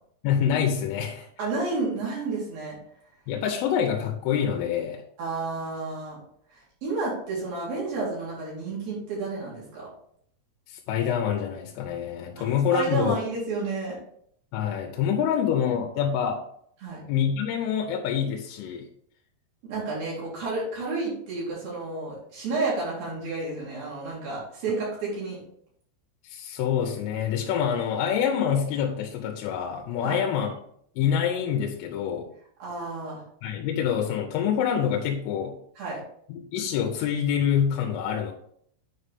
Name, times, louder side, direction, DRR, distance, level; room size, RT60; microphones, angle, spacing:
voice 1, 0.2-1.3 3.3-5.0 10.7-13.2 14.5-16.4 17.1-18.9 26.2-30.5 31.0-32.3 33.4-35.5 36.3-38.3, left 8 dB, 85° left, 2 dB, 3.3 m, -26 dB
voice 2, 1.4-2.8 5.2-6.2 6.5-9.9 12.4-13.9 16.8-17.0 19.6-25.4 30.0-30.2 32.6-33.2 35.8-36.0, right 3 dB, 50° right, -6 dB, 5.1 m, -31 dB
9.7 x 5.5 x 3.5 m, 0.66 s
omnidirectional pair, 5.7 m